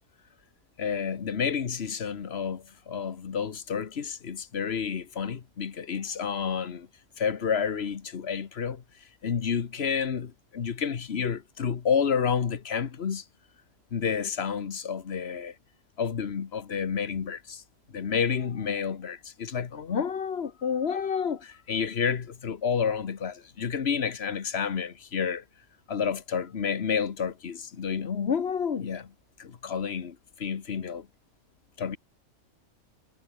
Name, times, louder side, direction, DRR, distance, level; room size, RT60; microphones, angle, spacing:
voice 1, 0.8-6.9 7.2-8.8 9.2-13.2 13.9-15.5 16.0-17.6 17.9-25.4 25.9-29.1 29.4-31.1 31.8-32.0, left 7 dB, 45° left, 1.3 m, -30 dB
omnidirectional pair, 1.5 m